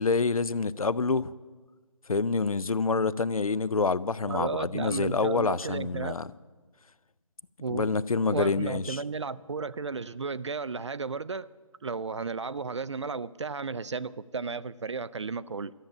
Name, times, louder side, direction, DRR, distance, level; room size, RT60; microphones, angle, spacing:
voice 1, 0.0-1.3 2.1-6.3 7.7-9.0, left 4 dB, 80° left, 0.5 m, -27 dB
voice 2, 4.3-6.1 7.6-7.9 8.3-11.5 11.8-15.7, right 4 dB, 55° right, 0.4 m, -34 dB
12.5 x 7.4 x 10.0 m
figure-of-eight pair, 155°, 18 cm